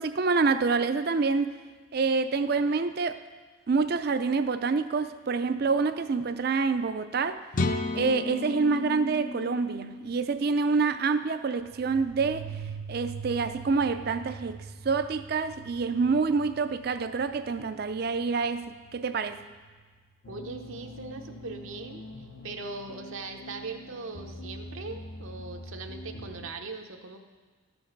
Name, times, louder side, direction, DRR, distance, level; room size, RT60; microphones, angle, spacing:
voice 1, 0.0-1.6 1.9-3.2 3.7-7.4 7.9-12.5 12.9-14.6 14.8-19.4, right 4 dB, 50° right, 11 dB, 0.4 m, -27 dB
sound 1, 7.5-11.3, left 3 dB, 40° left, 0.5 m, -33 dB
sound 2, 11.6-20.0, right 6 dB, 60° left, 1.0 m, -44 dB
sound 3, 20.2-26.5, equal, 90° left, 1.0 m, -44 dB
voice 2, 20.3-27.2, right 3 dB, 75° right, 4 dB, 0.8 m, -40 dB
13.0 x 5.3 x 5.9 m, 1.4 s
head